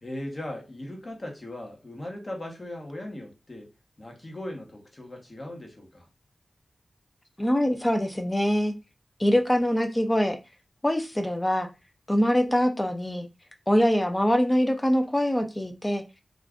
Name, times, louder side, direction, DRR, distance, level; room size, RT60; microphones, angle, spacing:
voice 1, 0.0-3.7 4.0-6.1, left 1 dB, 40° left, 0.9 m, -38 dB
voice 2, 7.4-8.7 9.2-10.4 10.8-11.7 12.1-13.3 13.7-16.0, equal, 15° left, 0.5 m, -23 dB
2.4 x 2.4 x 3.4 m
wide cardioid pair, 100°, 0 cm